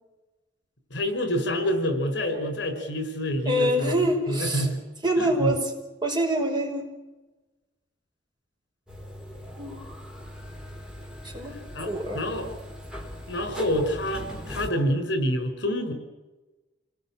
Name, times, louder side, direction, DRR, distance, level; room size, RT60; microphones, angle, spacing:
voice 1, 0.9-3.9 4.3-4.8 5.2-5.5 11.7-12.5 13.3-15.9, equal, 70° left, 9 dB, 5.2 m, -27 dB
voice 2, 3.4-4.7 5.0-5.7 6.0-6.9 9.6-9.8 11.3-12.2, right 1 dB, 25° right, 1 dB, 5.6 m, -25 dB
sound 1, 8.9-14.7, equal, 5° right, 4.2 m, -40 dB
29.0 x 20.0 x 8.9 m, 1.1 s
head